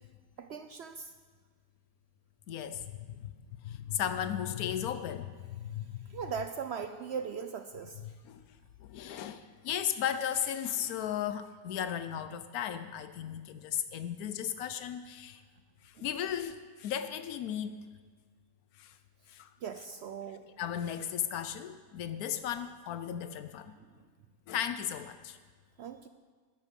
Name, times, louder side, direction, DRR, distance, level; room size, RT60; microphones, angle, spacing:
voice 1, 0.4-1.1 6.1-8.0 16.0-16.1 19.6-20.4 25.8-26.1, right 6 dB, 65° right, 9 dB, 0.7 m, -39 dB
voice 2, 2.5-3.3 3.6-6.2 8.0-8.5 8.8-15.4 15.8-17.8 18.8-19.0 19.3-19.5 20.6-23.7 24.5-25.4, left 9 dB, 85° left, 11 dB, 1.1 m, -36 dB
12.5 x 11.0 x 5.2 m, 1.5 s
omnidirectional pair, 1.5 m